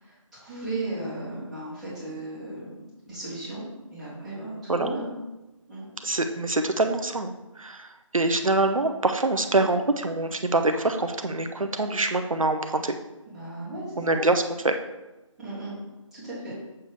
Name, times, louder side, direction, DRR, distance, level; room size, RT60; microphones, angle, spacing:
voice 1, 0.0-2.8 3.1-3.6 3.9-5.1 5.7-5.8 9.4-9.7 13.3-14.2 15.4-15.8 16.1-16.5, right 2 dB, ahead, -17 dB, 2.7 m, -35 dB
voice 2, 6.0-13.0 14.0-14.7, right 2 dB, 80° right, 6 dB, 0.7 m, -25 dB
7.0 x 6.6 x 3.5 m, 1.0 s
figure-of-eight pair, 160°, 17 cm